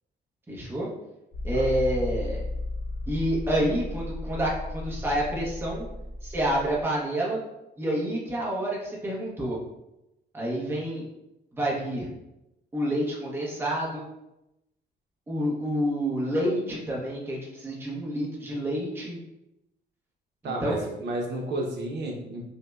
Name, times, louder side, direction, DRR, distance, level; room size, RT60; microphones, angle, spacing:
voice 1, 0.5-0.9 1.4-2.4 3.1-5.9 6.2-7.4 7.8-9.6 10.3-11.1 11.6-12.1 12.7-14.1 15.3-19.2 20.4-20.9, equal, 10° right, -4 dB, 0.7 m, -28 dB
sound 1, 1.3-6.8, left 2 dB, 45° left, 0.4 m, -34 dB
voice 2, 20.4-22.5, right 1 dB, 65° right, -1 dB, 0.7 m, -32 dB
5.3 x 2.1 x 2.3 m, 0.91 s
cardioid pair, 160°, 19 cm